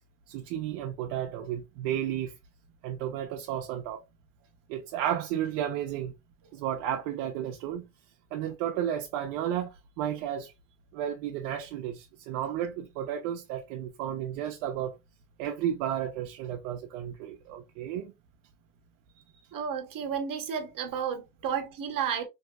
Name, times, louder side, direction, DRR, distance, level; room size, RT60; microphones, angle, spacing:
voice 1, 0.3-2.3 2.8-4.0 4.7-6.1 6.5-7.8 8.3-10.5 10.9-14.9 15.4-18.1, right 10 dB, 85° right, 0.7 m, -33 dB
voice 2, 19.5-22.3, right 7 dB, 45° right, 1.0 m, -32 dB
3.4 x 2.7 x 2.2 m
supercardioid pair, 105°, 48 cm